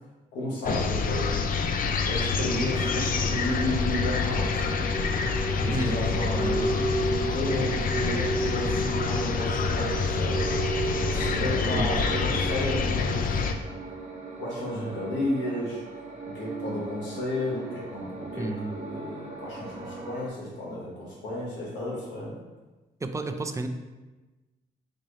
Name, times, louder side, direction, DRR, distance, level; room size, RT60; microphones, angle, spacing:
voice 1, 0.3-1.4 2.1-4.8 5.6-6.8 7.3-10.5 11.1-13.4 14.4-15.8 16.2-22.3, left 1 dB, 85° left, -5 dB, 1.2 m, -32 dB
sound 1, 0.6-13.5, left 5 dB, 50° left, 0.4 m, -27 dB
sound 2, 2.4-20.3, right 3 dB, 40° right, 0.7 m, -35 dB
voice 2, 18.4-18.8 23.0-23.7, right 2 dB, 15° right, 7 dB, 0.3 m, -31 dB
4.1 x 2.6 x 3.1 m, 1.2 s
supercardioid pair, 60°, 18 cm